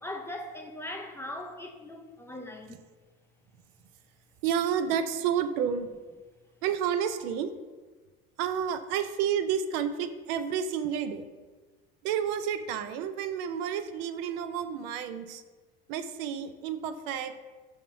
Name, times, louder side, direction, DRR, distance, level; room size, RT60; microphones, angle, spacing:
voice 1, 0.0-2.8, left 1 dB, 10° left, 2 dB, 0.3 m, -40 dB
voice 2, 4.4-5.9 6.6-7.5 8.4-11.2 12.0-15.4 15.9-17.3, right 8 dB, 75° right, 10 dB, 0.5 m, -30 dB
5.4 x 3.5 x 2.6 m, 1.3 s
supercardioid pair, 105°, 30 cm